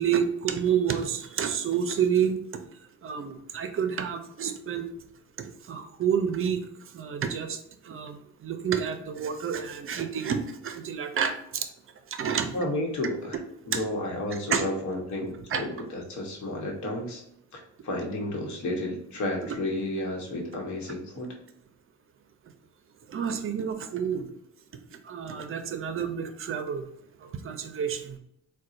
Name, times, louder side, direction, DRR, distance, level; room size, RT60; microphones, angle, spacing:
voice 1, 0.0-2.4 3.0-4.8 5.4-6.6 6.9-7.6 7.9-8.2 8.4-11.3 12.2-12.6 13.7-13.8 14.5-14.6 15.5-15.6 23.1-24.3 25.1-26.8 27.4-28.0, right 7 dB, 45° right, 8 dB, 0.5 m, -28 dB
voice 2, 12.5-13.4 13.7-17.2 17.5-21.3, left 1 dB, 70° left, 1 dB, 1.1 m, -32 dB
3.9 x 2.2 x 2.5 m, 0.78 s
cardioid pair, 90°, 30 cm